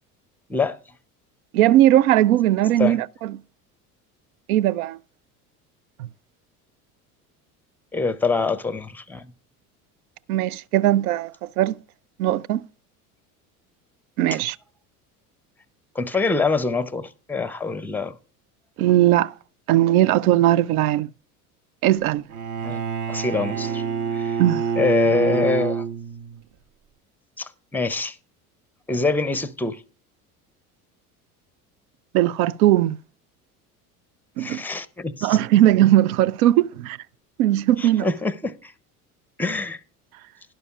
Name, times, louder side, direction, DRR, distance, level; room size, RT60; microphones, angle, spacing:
voice 1, 1.5-3.3 4.5-5.0 10.3-11.8 12.2-12.6 14.2-14.6 18.8-19.3 19.7-21.1 21.8-22.2 24.4-24.7 32.1-33.0 34.4-34.6 35.2-37.0 37.4-38.1, right 13 dB, 70° right, 0.5 m, -19 dB
voice 2, 7.9-9.3 15.9-18.2 22.6-22.8 23.1-23.8 24.1-24.4 24.8-25.8 27.4-28.2 28.9-29.8 34.4-35.4 37.8-38.7 39.4-39.8, left 4 dB, 5° left, 0.6 m, -25 dB
Bowed string instrument, 22.3-26.4, right 6 dB, 45° right, 0.9 m, -27 dB
12.0 x 11.0 x 2.4 m
hypercardioid pair, 70°, 45 cm